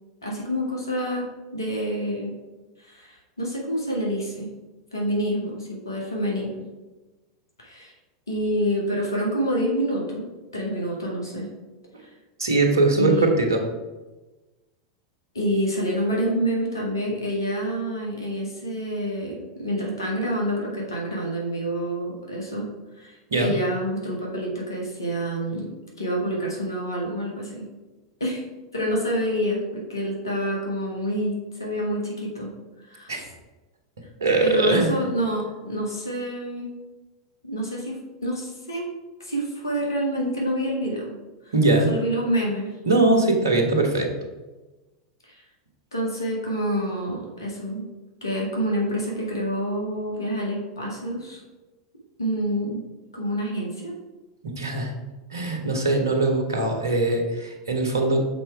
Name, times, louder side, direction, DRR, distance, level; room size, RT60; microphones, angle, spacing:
voice 1, 0.2-2.4 2.8-4.5 4.9-6.5 7.6-7.9 8.3-11.5 13.0-13.3 15.3-22.7 23.0-25.7 26.0-27.7 28.2-28.4 28.7-32.5 32.8-33.2 34.4-36.8 37.4-38.9 39.2-41.2 41.4-41.5 41.9-42.8 45.2-45.4 45.9-47.8 48.2-51.4 52.2-52.8 53.1-53.9, equal, 80° left, -2 dB, 1.5 m, -27 dB
voice 2, 12.4-13.6 23.3-23.5 33.1-33.3 34.2-34.9 41.5-41.9 42.8-44.1 54.4-54.9 55.3-58.2, right 2 dB, 70° right, 3 dB, 1.2 m, -21 dB
6.0 x 4.5 x 4.6 m, 1.2 s
figure-of-eight pair, 90°, 2 cm